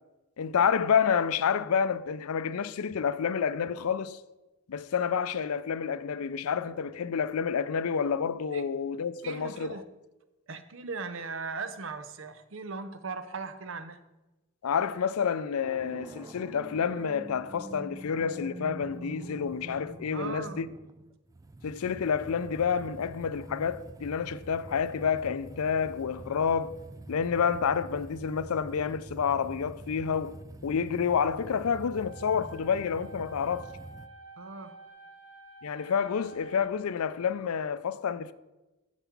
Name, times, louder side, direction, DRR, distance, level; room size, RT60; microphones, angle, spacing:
voice 1, 0.4-4.2 4.7-9.8 14.6-20.7 21.6-26.7 27.1-30.4 30.6-33.7 35.6-38.3, left 6 dB, 90° left, 0.5 m, -29 dB
voice 2, 9.2-9.8 10.5-14.0 20.1-20.6 34.4-34.8, right 4 dB, 65° right, 0.7 m, -38 dB
sound 1, 15.6-34.1, right 2 dB, 15° right, 0.3 m, -46 dB
sound 2, 32.0-37.0, right 2 dB, 90° right, 1.6 m, -50 dB
7.2 x 7.0 x 5.9 m
head